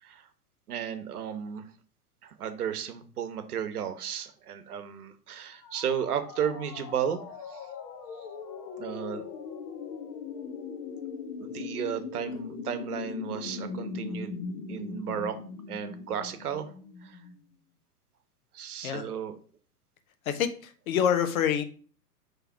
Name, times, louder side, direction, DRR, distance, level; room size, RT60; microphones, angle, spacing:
voice 1, 0.7-1.7 2.2-7.7 8.2-8.3 8.8-9.3 11.4-14.4 14.7-15.4 15.7-16.7 17.0-17.2 18.5-19.4, right 8 dB, 70° right, 10 dB, 1.0 m, -34 dB
sound 1, 5.5-17.4, left 5 dB, 35° left, 1.1 m, -40 dB
voice 2, 20.3-21.6, left 8 dB, 60° left, 9 dB, 1.0 m, -26 dB
5.8 x 3.4 x 4.8 m, 0.41 s
hypercardioid pair, 105°, 47 cm